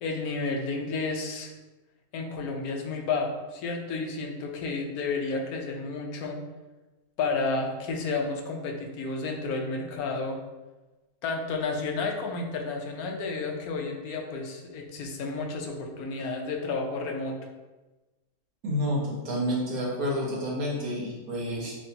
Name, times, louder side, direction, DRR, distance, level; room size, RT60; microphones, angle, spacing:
voice 1, 0.0-1.5 2.1-6.4 7.2-10.4 11.2-17.4, left 3 dB, 90° left, 2 dB, 1.2 m, -31 dB
voice 2, 18.6-21.7, equal, 80° right, -4 dB, 1.6 m, -29 dB
6.3 x 2.6 x 2.7 m, 1.1 s
omnidirectional pair, 1.5 m